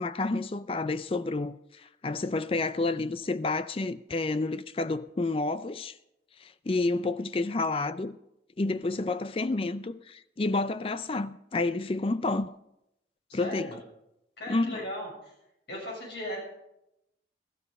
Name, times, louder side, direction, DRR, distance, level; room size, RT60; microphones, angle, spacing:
voice 1, 0.0-6.0 6.4-8.2 8.6-12.5 13.3-13.7 14.5-14.8, left 3 dB, 30° left, 0.4 m, -30 dB
voice 2, 13.3-13.8 14.4-15.3 15.7-16.4, left 1 dB, 70° left, 7.0 m, -37 dB
14.5 x 14.0 x 5.4 m
head